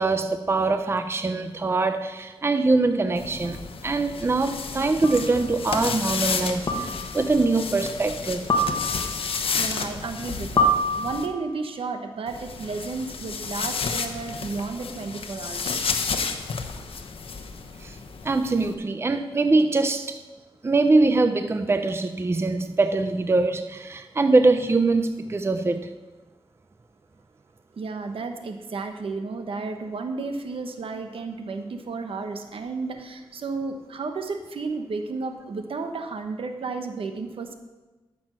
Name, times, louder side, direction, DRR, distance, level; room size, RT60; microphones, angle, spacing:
voice 1, 0.0-8.4 17.8-18.0 18.2-20.2 20.6-25.9, right 3 dB, 25° right, 8 dB, 0.5 m, -23 dB
sound 1, 3.2-11.3 12.3-18.7, left 5 dB, 80° left, 0.9 m, -32 dB
sound 2, 3.4-3.5 5.0-5.4 6.7-7.2 8.5-9.3 10.6-11.5, equal, 45° left, 1.3 m, -25 dB
voice 2, 9.3-15.8 27.8-37.5, right 4 dB, 75° right, 6 dB, 1.1 m, -33 dB
13.5 x 6.1 x 6.2 m, 1.2 s
wide cardioid pair, 115°, 9 cm